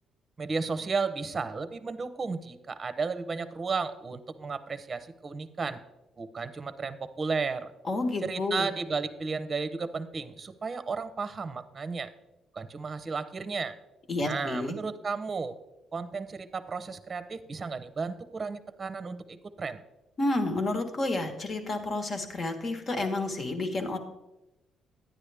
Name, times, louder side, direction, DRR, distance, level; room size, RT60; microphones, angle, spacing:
voice 1, 0.4-5.8 6.2-7.7 8.2-12.1 12.5-13.8 14.2-15.6 15.9-19.8, right 4 dB, 35° right, 12 dB, 0.7 m, -33 dB
voice 2, 7.8-8.7 14.1-14.7 20.2-24.0, left 2 dB, 45° left, 6 dB, 1.4 m, -30 dB
10.0 x 9.8 x 3.4 m, 0.97 s
cardioid pair, 90°, 0 cm